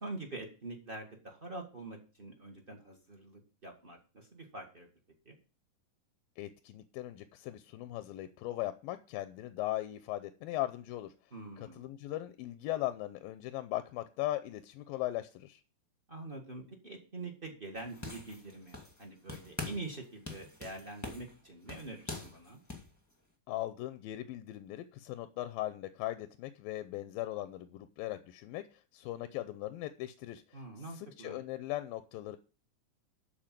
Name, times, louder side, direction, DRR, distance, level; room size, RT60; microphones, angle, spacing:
voice 1, 0.0-4.9 5.2-5.4 11.3-11.9 16.1-22.6 30.5-31.4, right 2 dB, 35° right, 2 dB, 0.9 m, -45 dB
voice 2, 6.4-11.1 11.6-15.6 23.5-28.6 28.9-30.4 31.0-32.4, left 15 dB, 85° left, 11 dB, 2.4 m, -39 dB
sound 1, 17.7-19.0 19.3-19.9 20.2-22.9, left 3 dB, 10° left, 0.7 m, -44 dB
12.5 x 4.5 x 7.5 m, 0.35 s
omnidirectional pair, 4.0 m